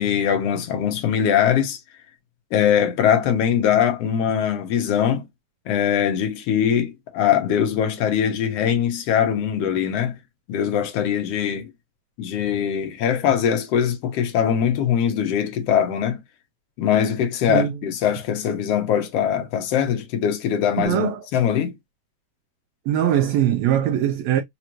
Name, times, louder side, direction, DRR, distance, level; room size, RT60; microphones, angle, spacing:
voice 1, 0.0-1.8 2.5-5.3 5.7-10.2 10.5-11.7 12.2-16.2 16.8-21.7, left 9 dB, 65° left, 1.7 m, -22 dB
voice 2, 17.5-17.8 20.8-21.2 22.9-24.4, right 11 dB, 75° right, 1.7 m, -21 dB
5.1 x 2.5 x 2.9 m
omnidirectional pair, 3.3 m